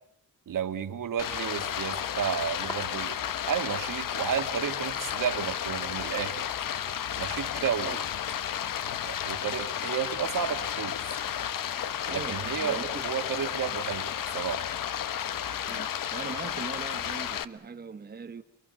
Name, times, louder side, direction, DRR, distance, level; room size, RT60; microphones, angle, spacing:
voice 1, 0.5-3.2 3.5-6.5 7.2-8.0 9.0-11.2 12.1-14.6, right 9 dB, 65° right, 2.3 m, -32 dB
Stream, 1.2-17.4, left 10 dB, 65° left, 1.3 m, -32 dB
sound 1, 2.0-9.1, equal, 15° left, 2.8 m, -49 dB
voice 2, 7.6-8.0 12.1-13.0 13.7-13.9 15.6-18.4, right 5 dB, 25° right, 1.2 m, -41 dB
29.0 x 23.5 x 8.1 m
wide cardioid pair, 155°, 35 cm